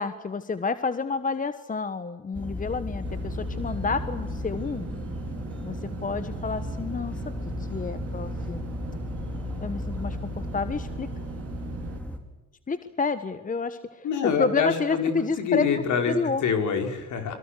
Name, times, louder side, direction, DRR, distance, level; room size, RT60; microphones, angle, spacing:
voice 1, 0.0-4.9 5.6-7.3 7.6-8.7 9.6-11.1 12.7-14.1 14.4-15.7 16.1-16.4, left 4 dB, 25° left, 12 dB, 1.3 m, -29 dB
sound 1, 2.3-12.2, left 2 dB, 5° left, 4.9 m, -35 dB
Engine / Mechanisms, 3.0-12.0, right 9 dB, 45° right, 1.9 m, -40 dB
voice 2, 14.0-16.2 16.4-17.4, left 6 dB, 60° left, 5 dB, 5.2 m, -26 dB
29.5 x 23.0 x 6.7 m, 1.1 s
hypercardioid pair, 70°, 34 cm